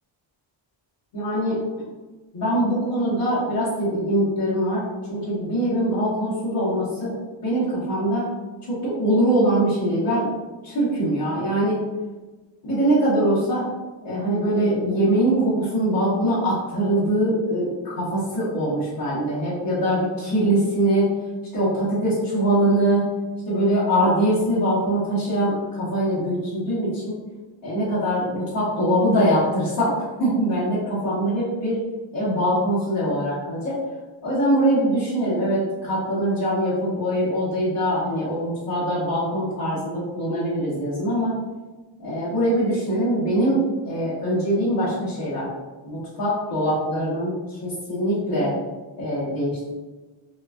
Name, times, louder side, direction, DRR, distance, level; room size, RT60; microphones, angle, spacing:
voice 1, 1.1-1.6 2.3-7.1 7.4-8.3 8.7-10.3 10.6-11.8 12.6-13.7 14.0-21.1 21.5-23.1 23.4-27.2 27.6-31.8 32.1-33.8 34.2-41.4 42.0-45.5 45.8-48.5 49.0-49.7, right 1 dB, 85° left, -12 dB, 1.4 m, -23 dB
4.3 x 2.3 x 2.6 m, 1.2 s
cardioid pair, 100°, 48 cm